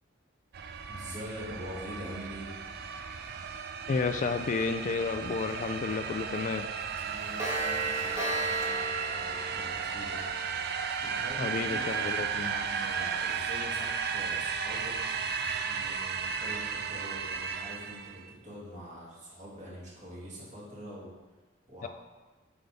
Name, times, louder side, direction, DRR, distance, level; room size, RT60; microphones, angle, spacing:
sound 1, 0.5-18.2, right 6 dB, 55° right, 0.5 m, -35 dB
voice 1, 0.9-2.5 7.0-10.3 11.0-15.0 15.6-21.1 21.7-21.9, equal, 35° right, -7 dB, 2.3 m, -44 dB
voice 2, 3.9-6.7 11.4-12.5 21.8-21.9, left 4 dB, 40° left, 7 dB, 0.3 m, -31 dB
Clock, 5.5-5.6 5.9-6.1 6.3-6.4 6.8-10.8, right 3 dB, 15° right, 1.4 m, -34 dB
7.8 x 3.5 x 5.4 m, 1.2 s
head